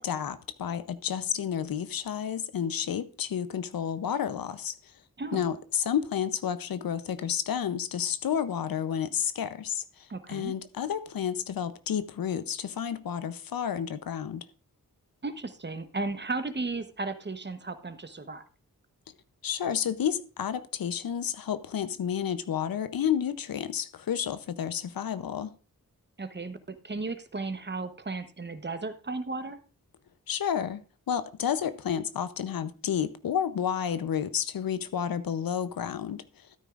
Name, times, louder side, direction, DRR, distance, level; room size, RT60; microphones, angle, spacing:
voice 1, 0.0-4.8 5.3-14.4 19.4-25.5 30.3-30.8 31.1-36.2, left 8 dB, 75° left, 0.7 m, -31 dB
voice 2, 10.1-10.5 15.2-18.4 26.2-29.6, right 3 dB, 30° right, 1.0 m, -35 dB
13.5 x 9.1 x 2.4 m
cardioid pair, 60°, 35 cm